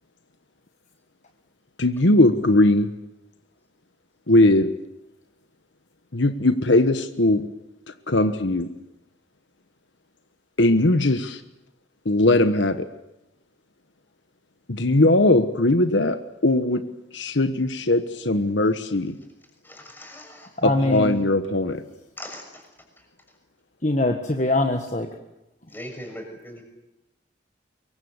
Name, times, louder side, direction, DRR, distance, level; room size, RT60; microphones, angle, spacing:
voice 1, 1.8-2.9 4.3-4.7 6.1-7.5 8.1-8.7 10.6-11.4 12.0-12.9 14.7-16.9 17.1-19.2 20.6-21.8, left 2 dB, 70° left, 10 dB, 1.3 m, -19 dB
voice 2, 19.6-20.5 22.2-22.6 25.7-26.6, left 1 dB, 10° left, 3 dB, 6.3 m, -39 dB
voice 3, 20.6-21.2 23.8-25.1, left 2 dB, 40° left, 5 dB, 1.6 m, -22 dB
24.5 x 23.0 x 8.1 m, 0.93 s
head